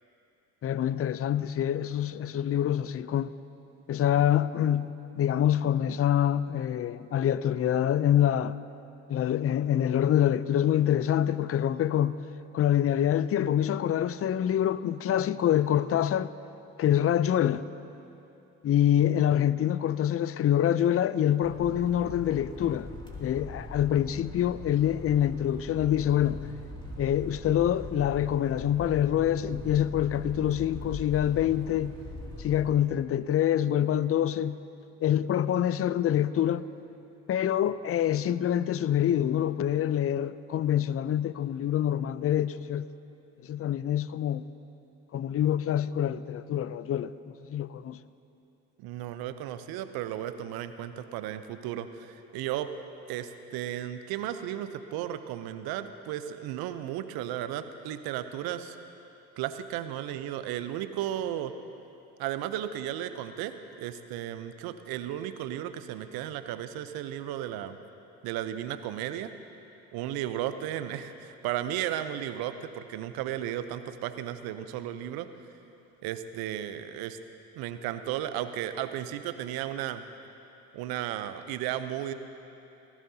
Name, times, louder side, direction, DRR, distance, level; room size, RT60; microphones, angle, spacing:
voice 1, 0.6-3.3 3.9-8.6 9.1-12.2 12.5-16.3 16.8-17.6 18.6-22.9 23.2-26.4 27.0-31.9 32.4-34.6 35.0-36.7 37.3-42.9 43.4-44.5 45.1-48.0, left 10 dB, 35° left, 0.5 m, -26 dB
sound 1, 21.4-32.8, left 2 dB, 10° left, 2.5 m, -42 dB
voice 2, 48.8-52.7 53.1-58.8 59.4-61.5 62.2-67.8 68.2-69.3 69.9-75.3 76.0-77.2 77.5-80.0 80.7-82.1, right 11 dB, 70° right, 0.8 m, -34 dB
19.0 x 14.0 x 2.8 m
hypercardioid pair, 55°, 38 cm